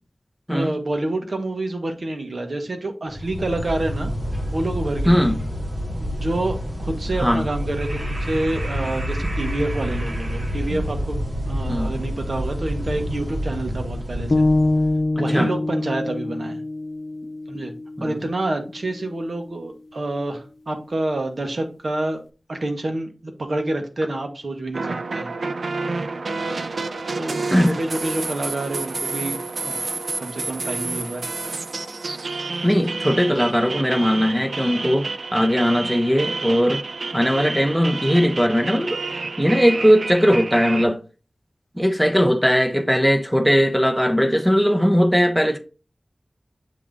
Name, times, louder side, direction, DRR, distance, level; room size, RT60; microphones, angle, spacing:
voice 1, 0.5-4.1 4.5-5.4 6.0-14.4 15.1-16.6 17.5-17.7 18.0-22.2 22.5-25.3 27.2-29.8 30.2-31.3, right 2 dB, 65° right, 1.4 m, -28 dB
sound 1, 3.1-15.0, equal, 40° right, 2.0 m, -28 dB
voice 2, 5.1-5.4 7.2-7.4 10.7-10.8 11.7-11.9 15.3-15.5 18.1-18.2 27.5-27.8 32.6-36.8 37.1-39.0 39.4-41.0 41.8-45.6, equal, 5° right, 1.0 m, -19 dB
sound 2, 14.3-18.4, left 2 dB, 60° left, 0.8 m, -24 dB
sound 3, 24.7-40.8, right 3 dB, 85° right, 0.4 m, -29 dB
7.3 x 3.6 x 3.8 m
wide cardioid pair, 70°, 0 cm